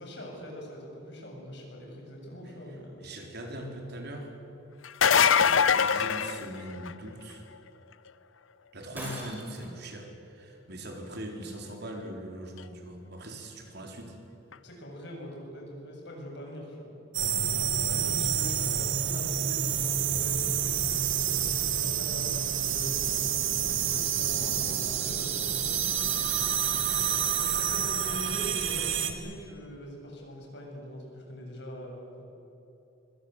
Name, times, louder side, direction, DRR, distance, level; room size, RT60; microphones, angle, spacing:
voice 1, 0.0-3.1 14.6-16.9 17.9-21.4 21.7-23.1 23.7-25.6 27.4-32.2, equal, 60° left, 0 dB, 7.8 m, -43 dB
voice 2, 3.0-4.3 5.1-7.5 8.7-14.2 17.8-18.0, right 1 dB, 55° right, 2 dB, 4.3 m, -41 dB
sound 1, 4.8-7.1 12.6-12.7 14.5-14.6, left 7 dB, 85° left, 0.8 m, -23 dB
Shatter, 8.9-9.8, equal, 10° right, 7.0 m, -40 dB
sound 2, 17.1-29.1, right 8 dB, 85° right, 2.5 m, -28 dB
25.0 x 24.5 x 8.2 m, 3.0 s
head